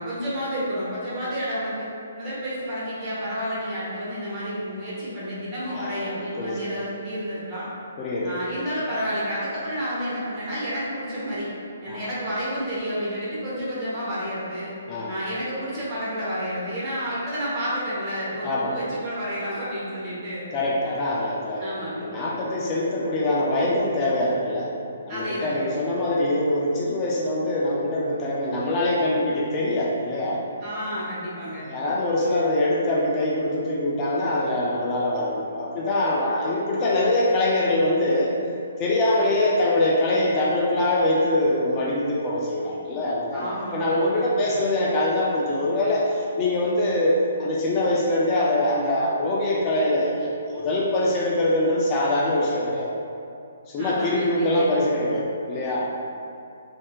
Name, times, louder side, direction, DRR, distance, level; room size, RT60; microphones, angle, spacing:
voice 1, 0.0-1.9 2.2-7.7 8.2-11.5 11.8-14.7 15.1-20.5 21.6-22.1 25.1-25.7 30.6-31.7 43.3-44.6 53.8-54.8, equal, 25° right, -9 dB, 0.9 m, -30 dB
voice 2, 5.7-6.6 8.0-8.3 11.9-12.0 14.9-15.1 18.4-18.7 20.5-24.7 25.1-30.4 31.6-38.3 38.8-52.9 53.7-55.9, left 1 dB, 20° left, -5 dB, 0.3 m, -23 dB
3.5 x 2.6 x 2.2 m, 2.5 s
hypercardioid pair, 165°, 0 cm